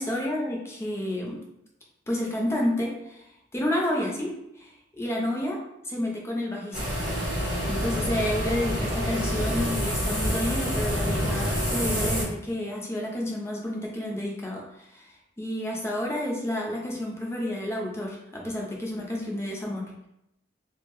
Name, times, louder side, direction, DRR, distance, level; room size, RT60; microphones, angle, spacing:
voice 1, 0.0-1.4 2.1-3.3 3.5-5.6 5.8-7.0 7.7-19.8, left 1 dB, 15° left, -1 dB, 0.5 m, -30 dB
sound 1, 6.7-12.2, equal, 5° right, 1.2 m, -27 dB
3.3 x 2.1 x 3.0 m, 0.82 s
head